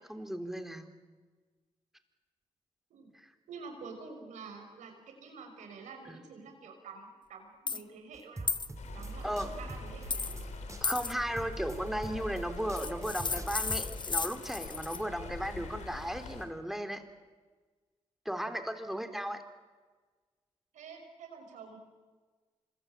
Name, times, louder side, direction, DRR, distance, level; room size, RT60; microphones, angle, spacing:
voice 1, 0.1-0.9 3.2-3.3 9.2-9.5 10.8-17.0 18.3-19.4, equal, 5° right, 7 dB, 3.5 m, -35 dB
voice 2, 3.5-8.5 8.9-10.2 20.7-21.8, right 4 dB, 85° right, 4 dB, 5.8 m, -48 dB
sound 1, 7.7-7.8 8.5-8.7 10.1-10.4 10.8-11.1 12.7-15.0, left 4 dB, 40° left, 1.1 m, -34 dB
sound 2, 8.1-14.0, right 2 dB, 25° right, 3.5 m, -43 dB
Stream, 8.8-16.5, left 4 dB, 75° left, 3.8 m, -46 dB
26.0 x 21.5 x 8.9 m, 1.4 s
supercardioid pair, 45°, 12 cm